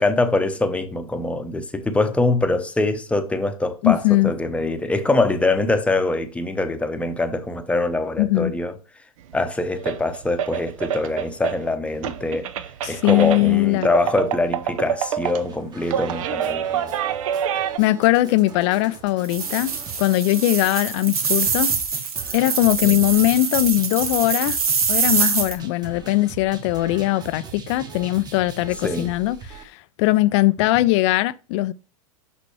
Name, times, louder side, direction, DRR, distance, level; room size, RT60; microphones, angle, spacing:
voice 1, 0.0-8.8 9.3-12.5 12.9-16.9 22.8-23.0 28.8-29.1, left 2 dB, 5° left, 0.8 m, -23 dB
voice 2, 3.8-4.3 8.2-8.5 12.8-13.9 17.8-19.7 20.0-21.7 22.3-24.6 24.9-29.7 30.0-31.7, left 17 dB, 50° left, 0.4 m, -20 dB
sound 1, 9.3-9.4 9.7-11.7 12.0-17.8, right 9 dB, 65° right, 0.7 m, -27 dB
sound 2, 15.2-29.6, right 6 dB, 20° right, 1.2 m, -40 dB
sound 3, 19.2-25.5, right 5 dB, 90° right, 1.3 m, -24 dB
6.1 x 5.8 x 3.2 m
hypercardioid pair, 105°, 18 cm